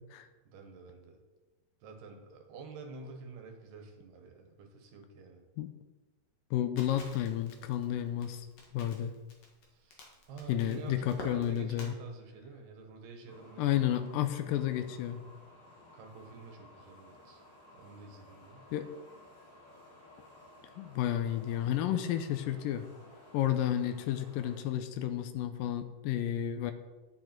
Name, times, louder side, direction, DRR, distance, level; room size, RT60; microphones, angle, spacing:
voice 1, 0.5-1.2 1.8-5.4 9.7-13.7 15.9-17.4 17.7-18.7, right 4 dB, 75° right, 3 dB, 3.3 m, -48 dB
voice 2, 6.5-8.5 8.7-9.1 10.5-11.9 13.6-15.2 18.7-18.9 20.8-22.8 23.3-26.7, left 11 dB, 85° left, 8 dB, 2.0 m, -31 dB
Crackle, 6.8-11.9, left 2 dB, 50° left, 2.3 m, -50 dB
sound 1, 13.3-24.6, left 1 dB, 30° left, 2.8 m, -56 dB
10.5 x 8.2 x 4.5 m, 1.2 s
omnidirectional pair, 4.6 m